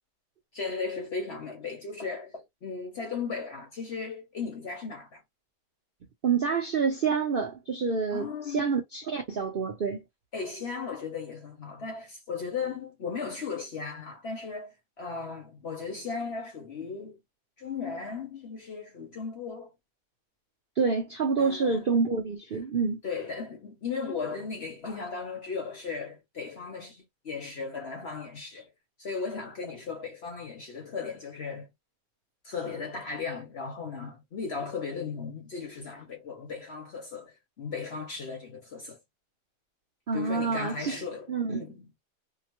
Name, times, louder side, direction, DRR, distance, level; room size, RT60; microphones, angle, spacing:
voice 1, 0.5-5.2 8.1-8.8 10.3-17.2 17.6-19.7 21.4-21.8 23.0-28.7 29.0-31.7 32.4-39.0 40.1-41.9, left 5 dB, 50° left, 0.8 m, -36 dB
voice 2, 6.2-10.0 20.8-23.0 40.1-41.6, right 5 dB, 60° right, 0.6 m, -28 dB
2.9 x 2.0 x 2.9 m
omnidirectional pair, 1.8 m